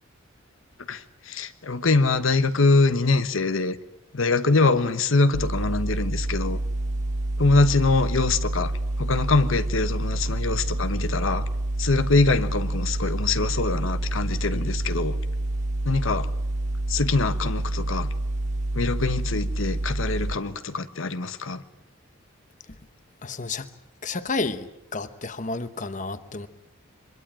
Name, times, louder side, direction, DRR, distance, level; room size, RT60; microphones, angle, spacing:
voice 1, 0.9-3.8 4.1-6.6 7.4-11.4 11.8-15.2 15.8-16.3 16.9-18.1 18.7-21.6, left 3 dB, 75° left, 1.1 m, -23 dB
sound 1, 5.3-20.4, right 1 dB, 35° right, 1.0 m, -28 dB
voice 2, 23.2-23.7 24.0-26.5, left 3 dB, 40° left, 1.0 m, -31 dB
24.5 x 22.0 x 9.0 m
head